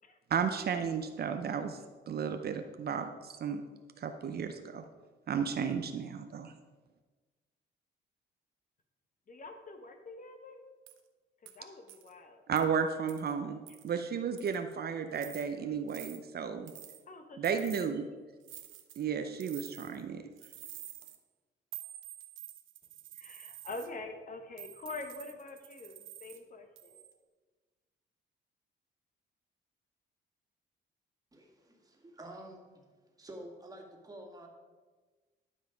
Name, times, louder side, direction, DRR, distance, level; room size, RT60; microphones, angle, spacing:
voice 1, 0.3-3.6 4.0-4.8 5.3-6.5 12.5-16.7 17.4-18.1 19.0-20.2, right 6 dB, 55° right, 7 dB, 0.7 m, -33 dB
voice 2, 9.3-10.7 11.4-12.4 17.1-17.7 18.0-18.1 23.1-27.0, left 3 dB, 40° left, 6 dB, 1.2 m, -45 dB
sound 1, 10.9-11.0 11.5-11.6 11.9-12.1 12.6-12.7 13.1-13.3 13.7-13.9 14.4-14.7 15.1-15.5 15.9-16.2 16.7-17.0 17.4-17.9 18.4-19.0 19.4-20.0 20.4-21.2 21.7-23.9 24.6-26.4 26.8-27.1, right 13 dB, 80° right, 0.9 m, -49 dB
voice 3, 31.3-32.6 33.2-34.5, right 1 dB, 20° right, 1 dB, 2.1 m, -49 dB
12.0 x 5.5 x 5.1 m, 1.4 s
cardioid pair, 90°, 20 cm